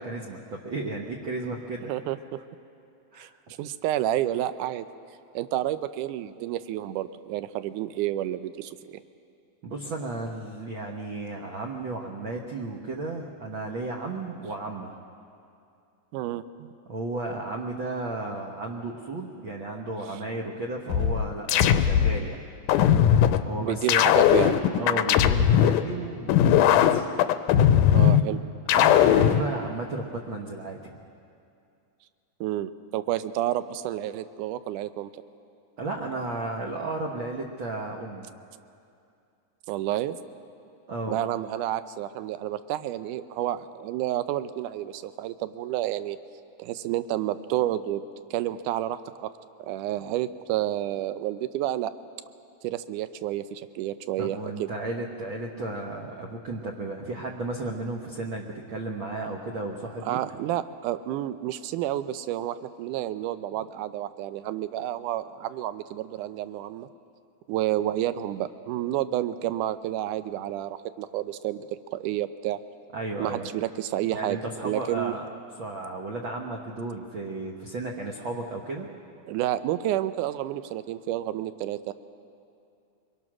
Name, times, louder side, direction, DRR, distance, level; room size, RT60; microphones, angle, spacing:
voice 1, 0.0-1.9 3.1-3.3 9.6-15.0 16.9-22.4 23.4-24.0 24.8-27.1 27.7-27.9 28.7-31.0 35.8-38.3 40.9-41.2 54.2-60.2 72.9-73.5 74.1-75.2 75.6-78.9, right 2 dB, 55° right, 0 dB, 1.5 m, -34 dB
voice 2, 1.8-2.4 3.2-3.3 3.6-4.9 5.3-9.0 16.1-16.7 23.6-24.6 27.9-28.4 32.4-35.1 39.7-40.2 41.1-46.2 46.6-48.0 48.3-49.3 49.6-51.9 52.6-54.7 60.0-66.9 67.5-71.7 71.9-72.6 73.2-74.4 74.6-75.1 79.3-81.9, right 13 dB, 85° right, 13 dB, 2.2 m, -30 dB
sound 1, 20.9-22.2 22.7-23.4 23.9-25.8 26.3-28.2 28.7-29.4, left 10 dB, 85° left, 2.2 m, -19 dB
24.5 x 22.0 x 6.1 m, 2.5 s
omnidirectional pair, 3.6 m